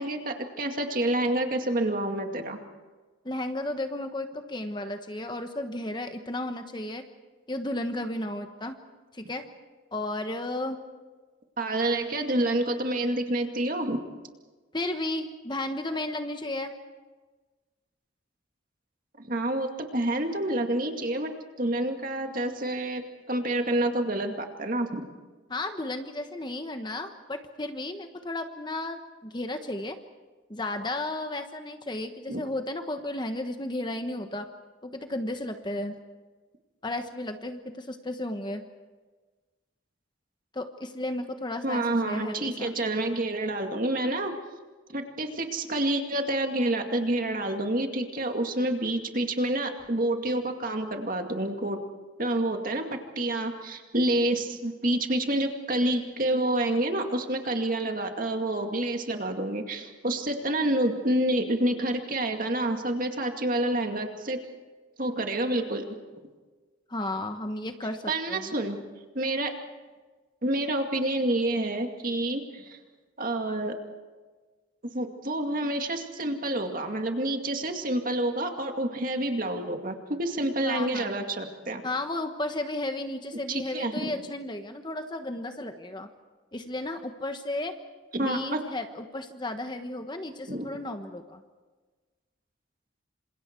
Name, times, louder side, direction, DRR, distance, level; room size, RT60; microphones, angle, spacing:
voice 1, 0.0-2.6 11.6-14.0 19.2-21.3 21.6-23.0 23.3-25.1 32.3-32.4 41.6-44.3 44.9-51.8 52.2-64.4 65.0-65.8 68.1-68.8 69.1-69.5 70.4-72.8 73.2-73.8 74.9-81.8 83.5-84.1 88.1-88.6 90.5-90.7, right 1 dB, 45° right, 4 dB, 2.3 m, -28 dB
voice 2, 3.2-7.0 7.5-8.7 9.1-9.4 9.9-10.8 14.7-16.7 25.5-30.0 30.5-34.5 34.8-35.9 36.8-38.6 40.5-42.7 66.9-68.5 80.6-81.2 81.8-86.1 86.5-87.7 88.2-91.4, left 1 dB, 20° left, 6 dB, 1.2 m, -33 dB
28.0 x 27.0 x 4.6 m, 1.3 s
head